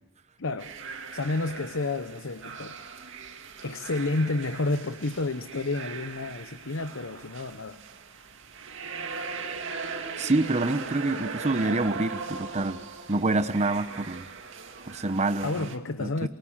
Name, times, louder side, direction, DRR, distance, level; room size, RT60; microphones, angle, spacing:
voice 1, 0.4-0.7 1.1-2.8 3.6-7.8 15.4-16.3, left 2 dB, 65° left, 11 dB, 1.0 m, -30 dB
sound 1, 0.6-15.8, right 5 dB, 60° right, 2.4 m, -39 dB
voice 2, 10.2-12.8 13.1-14.2 14.9-15.7 16.0-16.3, right 2 dB, 30° right, 11 dB, 0.9 m, -27 dB
27.5 x 24.0 x 7.4 m, 1.0 s
head